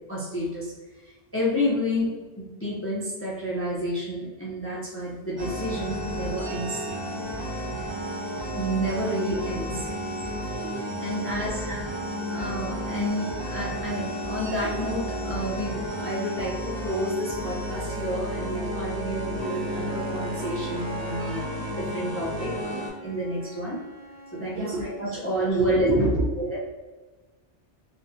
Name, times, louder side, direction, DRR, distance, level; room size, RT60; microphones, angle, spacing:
voice 1, 0.1-0.7 1.0-6.8 8.5-9.9 11.0-11.6 12.3-22.6 23.0-23.8 24.3-25.9 26.4-26.6, equal, 20° left, -7 dB, 0.4 m, -30 dB
sound 1, 5.4-22.9, equal, 40° right, 0.4 m, -32 dB
voice 2, 9.8-10.4 11.1-11.8 12.2-12.4 24.5-26.6, right 2 dB, 80° right, -4 dB, 0.8 m, -29 dB
Wind instrument woodwind instrument, 19.0-25.1, left 2 dB, 15° right, 0.9 m, -46 dB
2.6 x 2.3 x 2.6 m, 1.2 s
omnidirectional pair, 1.1 m